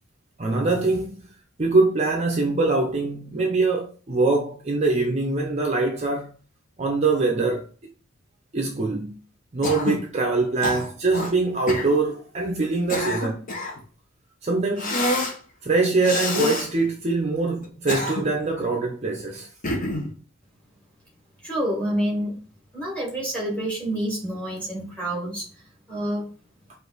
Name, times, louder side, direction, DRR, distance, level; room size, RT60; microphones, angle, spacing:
voice 1, 0.4-1.2 1.6-6.3 6.8-7.7 8.5-9.1 9.5-13.4 14.4-15.0 15.6-19.5, right 3 dB, 30° right, 0.5 m, -23 dB
Cough, 9.6-10.1 10.6-11.3 11.7-11.9 12.6-13.8 14.8-15.4 16.0-16.7 17.6-18.5 19.6-20.1, left 1 dB, 40° left, 1.0 m, -27 dB
voice 2, 21.4-22.4 22.7-26.3, right 1 dB, 5° left, 1.7 m, -28 dB
5.0 x 2.5 x 3.9 m
head